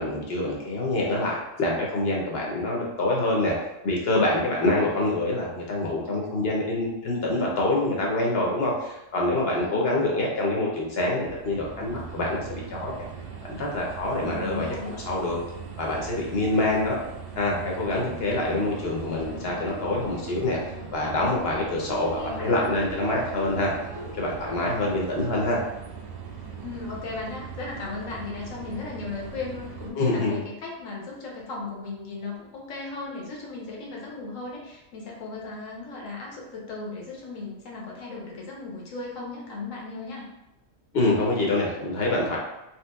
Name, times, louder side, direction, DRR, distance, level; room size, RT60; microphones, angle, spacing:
voice 1, 0.0-3.5 3.8-12.9 13.5-14.7 15.0-15.4 15.8-17.0 17.4-20.6 20.9-23.7 24.2-25.6 30.0-30.4 40.9-42.4, left 2 dB, 60° left, -2 dB, 0.9 m, -26 dB
voice 2, 9.6-10.0 14.2-15.0 21.9-22.7 26.6-40.3, left 3 dB, 85° left, -2 dB, 1.2 m, -36 dB
sound 1, 11.2-29.9, right 6 dB, 65° right, 0.4 m, -40 dB
sound 2, 18.1-25.4, left 1 dB, 30° left, 0.8 m, -42 dB
3.0 x 2.9 x 2.2 m, 0.92 s
omnidirectional pair, 1.3 m